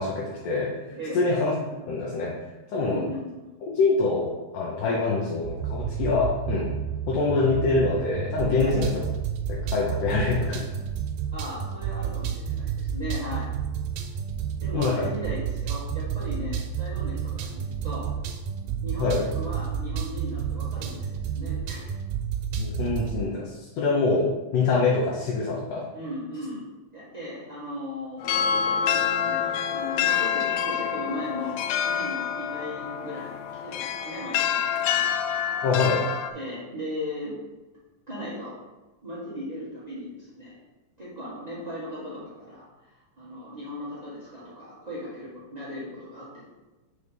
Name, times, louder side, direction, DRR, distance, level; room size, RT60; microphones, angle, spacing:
voice 1, 0.0-0.7 1.1-1.5 1.9-2.3 2.7-3.0 3.7-6.7 7.1-9.0 9.5-10.7 14.7-15.1 19.0-19.3 22.6-25.9 35.6-36.1, left 3 dB, 70° left, -3 dB, 2.2 m, -25 dB
voice 2, 0.9-1.2 2.8-3.4 8.6-8.8 11.3-13.5 14.6-18.1 18.8-22.0 25.9-26.6 26.9-31.6 31.9-33.3 33.6-35.1 36.3-37.3 38.1-38.5 39.0-40.6 41.0-46.5, left 1 dB, 65° right, -9 dB, 0.4 m, -37 dB
sound 1, 5.5-23.2, right 8 dB, 90° right, 2.5 m, -31 dB
sound 2, 28.2-36.3, left 8 dB, 85° left, 2.3 m, -27 dB
5.4 x 4.9 x 5.1 m, 1.1 s
omnidirectional pair, 4.1 m